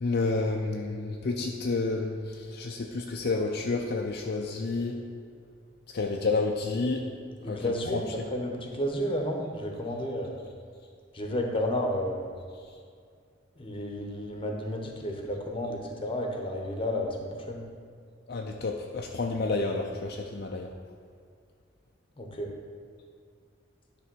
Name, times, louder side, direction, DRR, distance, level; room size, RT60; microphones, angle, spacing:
voice 1, 0.0-5.0 5.9-7.1 7.4-8.1 12.6-12.7 18.3-20.7, left 3 dB, 55° left, 1 dB, 0.5 m, -30 dB
voice 2, 7.4-10.4 11.1-12.3 13.6-17.6 22.2-22.5, equal, 30° left, 1 dB, 1.0 m, -32 dB
10.0 x 3.4 x 6.1 m, 2.2 s
head